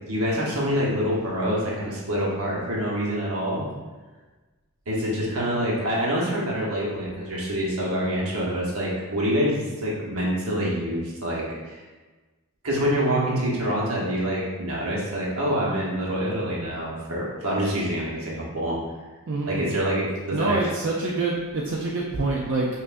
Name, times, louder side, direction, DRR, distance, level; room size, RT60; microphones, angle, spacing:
voice 1, 0.1-3.7 4.9-11.8 12.6-18.8 19.5-20.7, equal, 80° right, -5 dB, 1.1 m, -26 dB
voice 2, 19.3-19.7 20.3-22.7, right 3 dB, 55° right, -3 dB, 0.4 m, -26 dB
5.6 x 2.6 x 2.5 m, 1.3 s
head